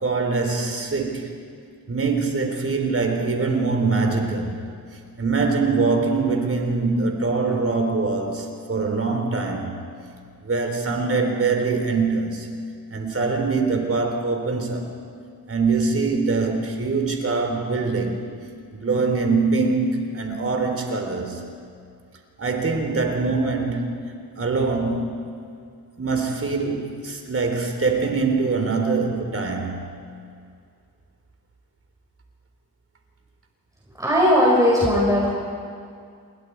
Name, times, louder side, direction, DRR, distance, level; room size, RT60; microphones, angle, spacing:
voice 1, 0.0-1.3 1.9-4.6 5.2-9.7 10.4-12.5 12.9-14.9 15.5-18.2 18.7-21.4 22.4-25.2 26.0-30.0, right 4 dB, 35° right, 4 dB, 4.0 m, -23 dB
voice 2, 34.0-35.3, equal, 10° right, -5 dB, 5.8 m, -18 dB
28.5 x 21.5 x 4.8 m, 2.3 s
cardioid pair, 80°, 38 cm